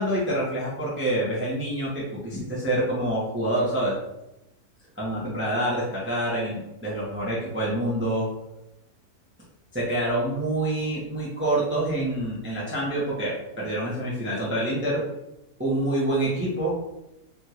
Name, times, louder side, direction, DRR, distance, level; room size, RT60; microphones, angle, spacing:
voice 1, 0.0-4.0 5.0-8.3 9.7-15.0 15.6-16.7, right 1 dB, 10° right, -6 dB, 0.6 m, -26 dB
3.5 x 2.4 x 2.9 m, 0.89 s
omnidirectional pair, 1.6 m